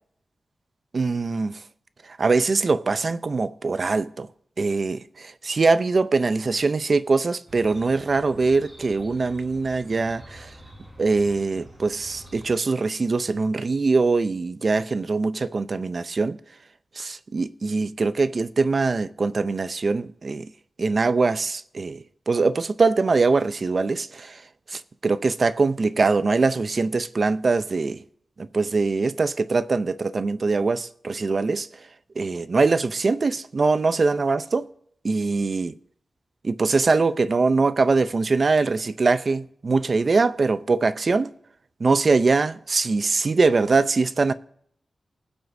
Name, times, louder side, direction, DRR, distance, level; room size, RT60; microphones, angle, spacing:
voice 1, 0.9-1.6 2.1-4.3 4.6-10.5 11.0-16.4 17.0-20.5 20.8-24.4 24.7-28.0 28.4-31.7 32.2-34.7 35.0-35.7 36.4-41.3 41.8-44.3, right 4 dB, 40° right, 0.5 m, -22 dB
Chirp tweet, 7.5-12.5, equal, 20° right, 4.4 m, -47 dB
20.0 x 7.9 x 2.6 m
wide cardioid pair, 175°, 0 cm